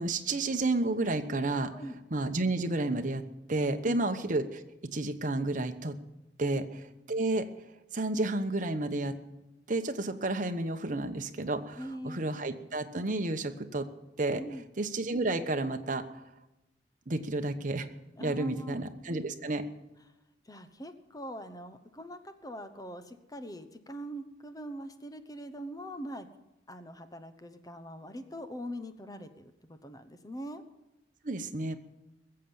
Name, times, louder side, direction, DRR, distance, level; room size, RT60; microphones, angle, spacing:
voice 1, 0.0-1.7 2.1-3.2 3.5-4.6 4.9-6.0 6.4-6.6 7.1-7.5 7.9-9.1 9.7-13.9 14.2-14.4 14.8-16.0 17.1-17.9 18.2-19.6 31.2-31.8, right 2 dB, 45° right, 7 dB, 1.0 m, -31 dB
voice 2, 11.8-12.3 14.3-14.7 18.2-18.8 20.5-26.3 26.7-30.6, equal, 20° left, 9 dB, 0.9 m, -42 dB
20.5 x 7.7 x 7.0 m, 0.97 s
head